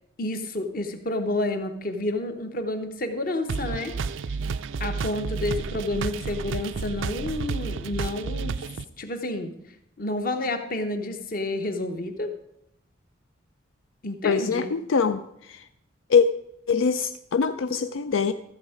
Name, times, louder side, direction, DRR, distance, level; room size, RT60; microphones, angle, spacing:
voice 1, 0.2-3.9 4.8-8.6 9.0-9.5 10.0-12.3 14.0-14.7, left 2 dB, 45° left, 7 dB, 1.0 m, -29 dB
sound 1, 3.5-8.9, right 5 dB, 70° right, 0.4 m, -31 dB
voice 2, 14.2-15.2 15.5-15.6 16.1-16.3 16.7-18.3, left 5 dB, 80° left, 10 dB, 0.4 m, -23 dB
13.5 x 7.3 x 5.0 m, 0.79 s
head